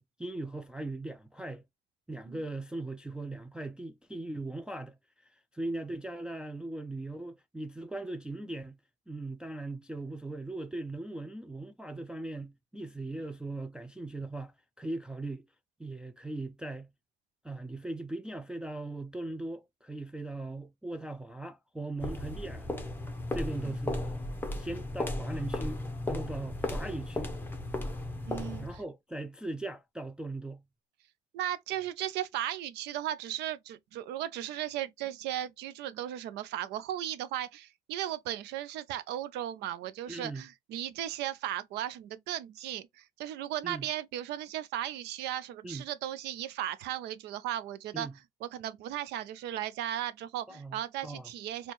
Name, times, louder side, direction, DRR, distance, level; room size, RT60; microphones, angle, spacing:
voice 1, 0.0-1.6 2.1-5.0 5.2-8.8 9.1-15.5 15.8-16.9 17.4-22.7 23.3-24.3 24.6-25.8 26.1-27.3 28.6-30.6 40.1-40.4 43.6-43.9 45.6-45.8 47.9-48.1 50.5-51.3, right 2 dB, 5° right, 0.3 m, -39 dB
sound 1, 22.0-28.8, left 2 dB, 10° left, 0.7 m, -35 dB
voice 2, 28.3-28.8 31.3-48.1 48.4-51.7, right 12 dB, 80° right, 0.5 m, -36 dB
4.2 x 2.3 x 3.1 m
cardioid pair, 110°, 17 cm